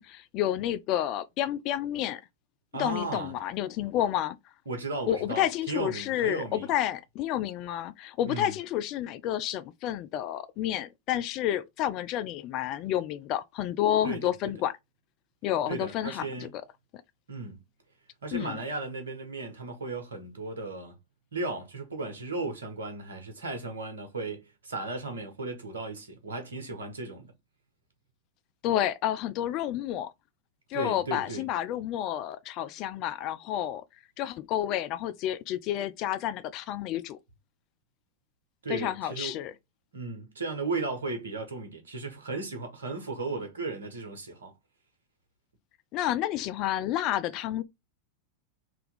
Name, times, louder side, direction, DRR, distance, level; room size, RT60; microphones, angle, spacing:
voice 1, 0.0-2.2 2.8-4.4 5.1-14.7 15.4-16.5 18.3-18.6 28.6-30.1 30.7-33.8 34.2-37.2 38.7-39.5 45.9-47.6, left 12 dB, 40° left, 0.4 m, -30 dB
voice 2, 2.7-3.3 4.7-6.7 8.3-8.5 14.0-14.5 15.7-16.5 17.3-17.6 18.2-20.9 21.3-27.3 30.7-31.5 38.6-39.4 39.9-44.5, right 3 dB, 70° right, 1.2 m, -35 dB
3.3 x 2.9 x 3.6 m
figure-of-eight pair, 90°, 0 cm